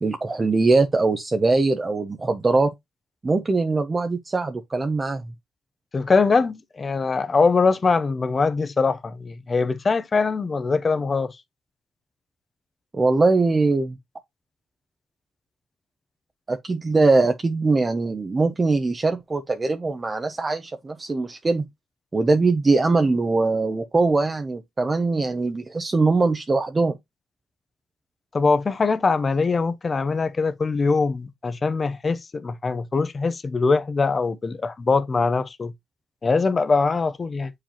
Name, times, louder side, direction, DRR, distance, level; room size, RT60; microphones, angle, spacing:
voice 1, 0.0-2.7 3.2-5.3 12.9-14.0 16.5-21.7 22.1-27.0, right 3 dB, 25° right, 0.7 m, -21 dB
voice 2, 5.9-11.4 28.3-35.7 36.2-37.5, left 4 dB, 35° left, 0.7 m, -22 dB
7.3 x 4.9 x 2.9 m
cardioid pair, 90°, 0 cm